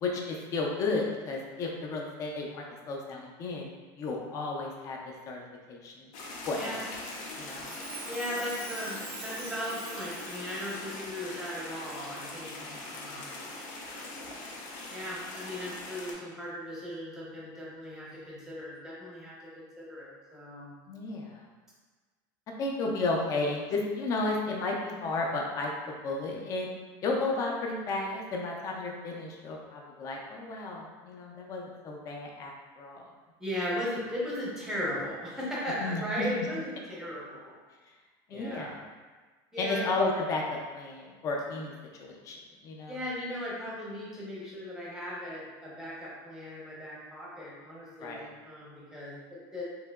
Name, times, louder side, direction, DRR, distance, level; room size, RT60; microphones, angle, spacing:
voice 1, 0.0-3.7 4.0-5.0 5.3-5.4 5.7-6.1 6.5-6.7 7.4-7.7 12.7-12.8 20.9-21.5 22.6-26.7 27.0-33.1 35.8-36.3 38.3-38.8 39.6-43.0 48.0-48.3, left 3 dB, 35° left, 0 dB, 0.4 m, -33 dB
sound 1, 6.1-16.1, left 2 dB, 85° left, 0.6 m, -41 dB
Chime, 6.9-11.0 11.7-11.8 12.5-12.7 13.2-13.4 14.1-14.2 14.8-14.9 15.6-15.7, right 6 dB, 75° right, 0.4 m, -47 dB
voice 2, 8.1-12.5 12.9-13.4 14.9-20.7 33.4-37.5 38.3-38.7 39.5-39.9 42.9-49.6, equal, 5° right, -6 dB, 0.7 m, -37 dB
3.2 x 2.8 x 2.3 m, 1.4 s
supercardioid pair, 150°, 10 cm